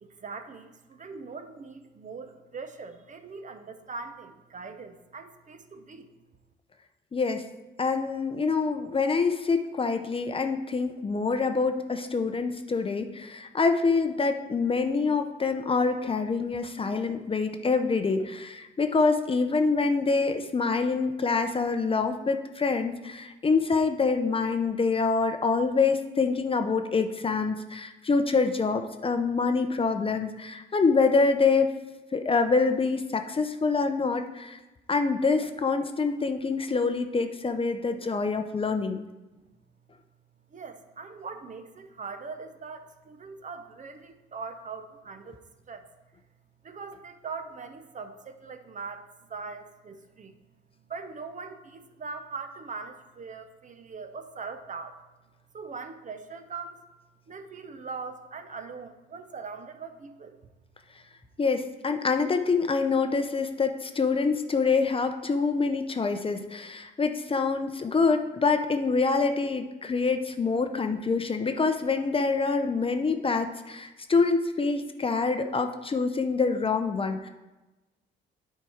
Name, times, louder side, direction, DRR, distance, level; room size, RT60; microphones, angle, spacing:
voice 1, 0.0-6.1 40.5-45.9 46.6-50.4 50.9-55.0 55.5-56.8 57.3-60.4, right 4 dB, 40° right, 8 dB, 0.8 m, -41 dB
voice 2, 7.1-7.4 7.8-31.7 32.1-34.6 34.9-39.0 61.4-77.3, left 4 dB, 25° left, 7 dB, 0.6 m, -26 dB
9.1 x 4.7 x 4.8 m, 1.1 s
cardioid pair, 90°, 20 cm